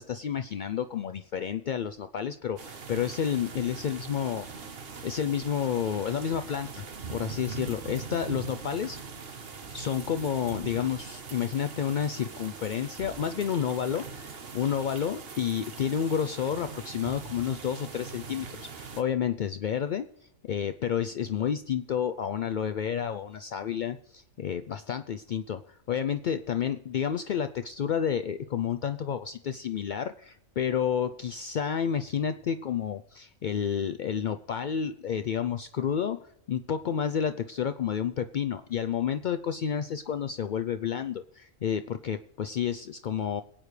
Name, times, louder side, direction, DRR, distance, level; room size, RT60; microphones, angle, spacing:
voice 1, 0.0-9.0 9.7-20.1 20.5-43.4, left 8 dB, 70° left, 9 dB, 0.4 m, -30 dB
sound 1, 2.6-19.0, right 5 dB, 50° right, 1.3 m, -42 dB
sound 2, 6.5-16.5, right 6 dB, 80° right, 1.5 m, -55 dB
22.5 x 8.9 x 3.2 m, 0.77 s
omnidirectional pair, 1.4 m